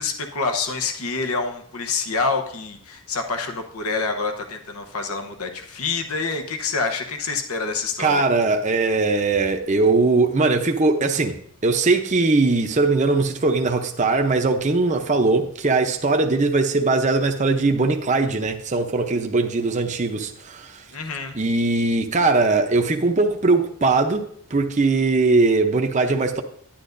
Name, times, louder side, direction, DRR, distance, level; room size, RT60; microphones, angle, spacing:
voice 1, 0.0-8.2 20.9-21.4, left 4 dB, 75° left, 0.9 m, -27 dB
voice 2, 8.0-11.4 11.6-20.8 21.3-26.4, right 3 dB, 30° right, 0.7 m, -20 dB
10.5 x 10.0 x 2.6 m
head